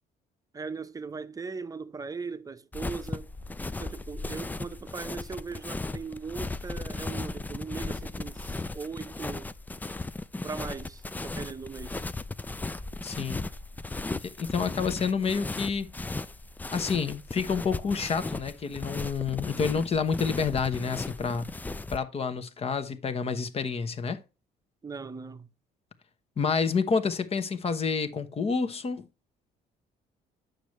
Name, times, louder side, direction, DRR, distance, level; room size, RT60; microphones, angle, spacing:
voice 1, 0.5-3.3 3.8-9.5 10.4-12.0 24.8-25.5, right 5 dB, 20° right, 0.8 m, -39 dB
sound 1, 2.7-22.0, left 2 dB, 10° left, 0.4 m, -36 dB
voice 2, 13.0-13.4 14.2-15.9 16.7-21.5 21.9-24.2 26.4-29.1, left 5 dB, 35° left, 1.1 m, -29 dB
9.0 x 6.6 x 3.1 m
cardioid pair, 110°, 17 cm